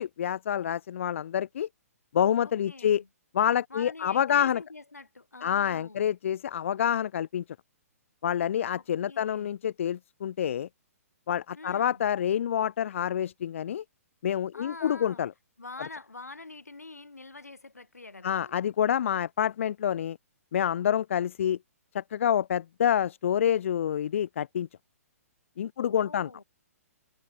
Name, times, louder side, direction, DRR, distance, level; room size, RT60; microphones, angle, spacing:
voice 1, 0.0-1.7 2.1-3.0 3.3-4.6 5.4-7.4 8.2-10.7 11.3-13.8 14.2-15.3 18.2-20.2 20.5-21.6 21.9-24.7 25.6-26.3, left 9 dB, 55° left, 0.9 m, -27 dB
voice 2, 2.4-3.1 3.7-6.1 8.7-9.6 11.5-12.0 14.5-15.2 15.6-18.5 25.8-26.4, left 3 dB, 80° left, 6.6 m, -45 dB
figure-of-eight pair, 125°, 8 cm